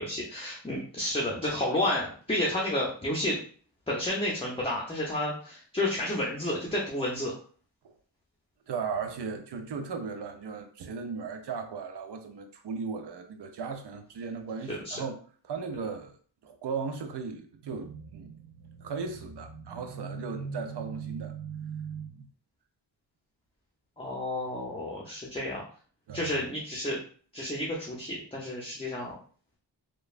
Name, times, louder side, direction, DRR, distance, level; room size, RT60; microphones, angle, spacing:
voice 1, 0.0-3.4 3.9-7.3 14.7-15.0 24.0-25.6 26.1-27.0 27.3-29.1, left 1 dB, 10° left, 0.7 m, -31 dB
voice 2, 8.7-15.2 15.4-16.2 16.4-22.3 26.1-26.4, right 5 dB, 60° right, 0.6 m, -36 dB
3.0 x 2.2 x 2.4 m
cardioid pair, 55°, 47 cm